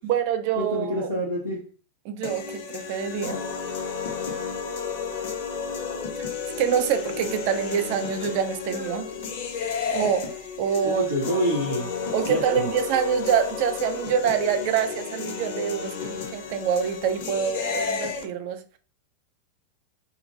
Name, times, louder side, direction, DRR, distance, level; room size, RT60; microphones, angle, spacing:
voice 1, 0.0-1.1 2.0-3.4 6.6-9.1 9.9-11.1 12.1-18.8, right 8 dB, 45° right, 0.4 m, -26 dB
voice 2, 0.5-1.6 10.8-11.9 12.3-12.7, equal, 80° right, 0.9 m, -26 dB
sound 1, 2.2-18.2, left 6 dB, 50° left, 0.5 m, -32 dB
2.7 x 2.4 x 2.7 m
figure-of-eight pair, 90°, 0 cm